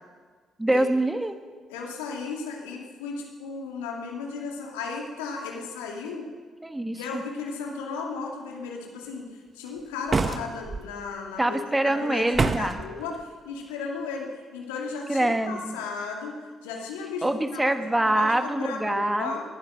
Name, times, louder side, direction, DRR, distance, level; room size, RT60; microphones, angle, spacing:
voice 1, 0.6-1.4 6.6-7.2 11.4-12.8 15.1-15.8 17.2-19.3, right 1 dB, 15° right, 8 dB, 1.5 m, -25 dB
voice 2, 1.7-6.3 6.9-16.4 16.6-17.7 18.0-19.4, left 4 dB, 85° left, 0 dB, 2.4 m, -35 dB
sound 1, 10.1-10.8 12.3-12.9, right 4 dB, 40° right, 1.0 m, -25 dB
19.0 x 11.5 x 6.5 m, 1.5 s
hypercardioid pair, 45°, 0 cm